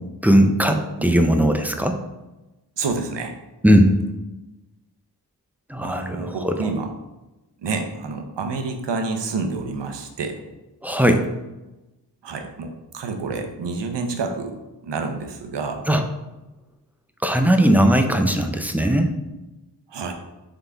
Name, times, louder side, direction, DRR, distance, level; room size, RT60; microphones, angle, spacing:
voice 1, 0.2-2.0 3.6-3.9 5.7-6.2 6.4-6.7 10.8-11.2 15.9-16.0 17.2-19.1, equal, 5° right, 5 dB, 0.5 m, -18 dB
voice 2, 2.8-3.4 5.8-6.9 7.6-10.4 12.2-15.9 19.9-20.1, right 4 dB, 75° right, 5 dB, 0.7 m, -28 dB
3.9 x 3.7 x 3.4 m, 1.0 s
cardioid pair, 45°, 43 cm